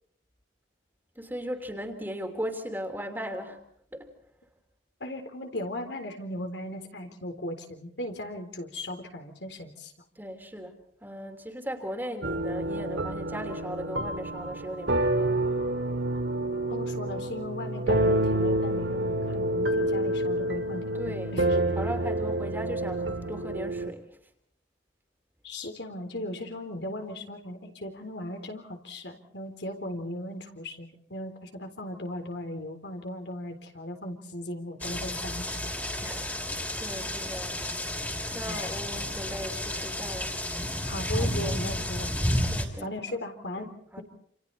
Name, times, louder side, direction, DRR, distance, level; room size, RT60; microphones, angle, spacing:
voice 1, 1.1-3.6 3.9-4.1 10.2-15.4 20.9-24.2 36.0-37.7 38.3-40.4 41.2-41.6 42.5-42.9 43.6-44.0, equal, 10° right, 4 dB, 3.1 m, -38 dB
voice 2, 5.0-9.9 16.7-21.4 25.4-35.6 38.4-38.8 40.9-42.3 42.8-44.0, left 1 dB, 70° left, 5 dB, 3.9 m, -37 dB
sound 1, 12.2-23.9, right 1 dB, 80° right, 1.9 m, -28 dB
sound 2, 34.8-42.7, left 1 dB, 10° left, 3.3 m, -31 dB
28.5 x 28.5 x 4.2 m, 0.63 s
head